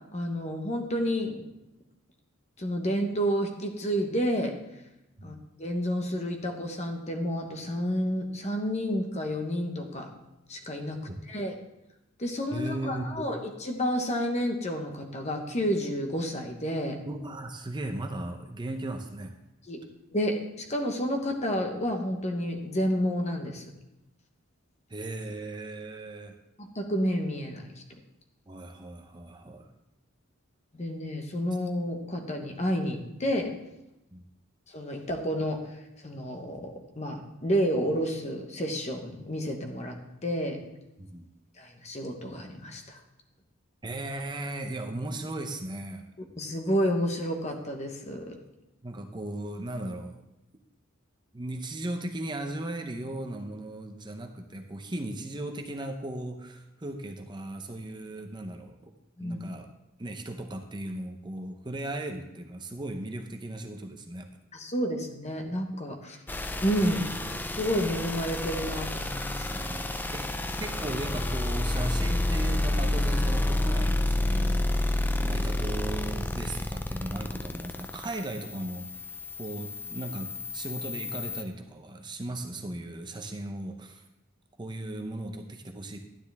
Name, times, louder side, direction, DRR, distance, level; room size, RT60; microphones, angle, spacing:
voice 1, 0.1-1.4 2.6-4.6 5.2-10.1 10.5-11.0 11.3-11.5 12.2-17.0 19.7-19.8 20.1-23.7 26.6-27.7 30.7-33.5 34.7-35.8 36.0-40.6 41.6-43.0 46.4-48.3 59.2-59.4 64.5-66.2 66.6-69.7, equal, 35° left, 4 dB, 1.2 m, -30 dB
voice 2, 12.5-13.2 17.1-19.3 24.9-26.3 28.5-29.7 34.1-34.2 41.0-41.3 43.8-46.0 48.8-50.3 51.3-58.8 59.2-59.7 60.0-64.3 69.5-69.8 70.1-70.3 70.6-78.9 79.4-84.0 84.6-86.0, right 1 dB, 20° right, 4 dB, 0.7 m, -37 dB
sound 1, 66.3-81.4, left 1 dB, 10° left, 0.5 m, -30 dB
12.0 x 9.7 x 3.5 m, 0.93 s
head